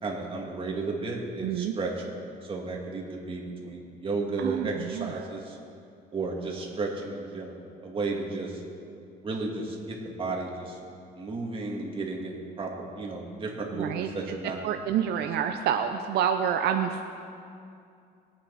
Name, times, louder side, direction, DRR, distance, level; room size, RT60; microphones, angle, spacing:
voice 1, 0.0-2.1 2.4-5.6 6.1-8.6 9.2-10.8 11.1-14.6, right 3 dB, 30° right, -1 dB, 2.5 m, -33 dB
voice 2, 1.4-1.7 4.4-5.1 13.8-14.4 14.6-17.1, right 8 dB, 75° right, 6 dB, 0.7 m, -28 dB
22.0 x 8.8 x 4.2 m, 2.5 s
cardioid pair, 110°, 17 cm